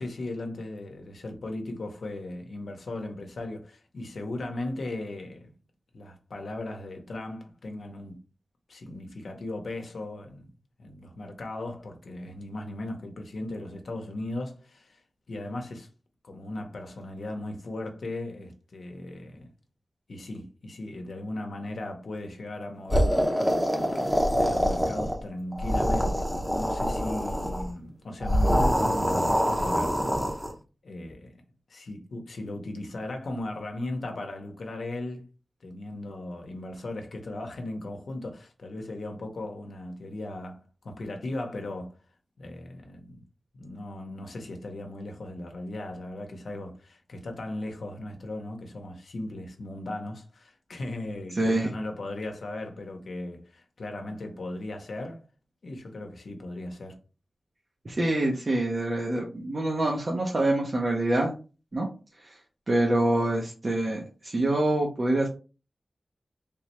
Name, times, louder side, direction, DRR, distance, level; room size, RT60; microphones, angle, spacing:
voice 1, 0.0-5.5 5.9-8.2 8.7-10.5 10.8-15.0 15.3-15.9 16.2-19.5 20.1-30.1 30.8-31.4 31.7-35.3 35.6-41.9 42.4-43.2 43.5-55.2 55.6-57.0, left 2 dB, 80° left, 0.8 m, -37 dB
sound 1, 22.9-25.2 25.5-27.6 28.2-30.5, equal, 10° right, 0.8 m, -25 dB
voice 2, 51.4-51.7 57.8-61.3 61.7-61.9 62.2-62.3 62.7-65.3, right 1 dB, 45° right, 0.8 m, -26 dB
3.4 x 3.1 x 3.0 m
wide cardioid pair, 100°, 0 cm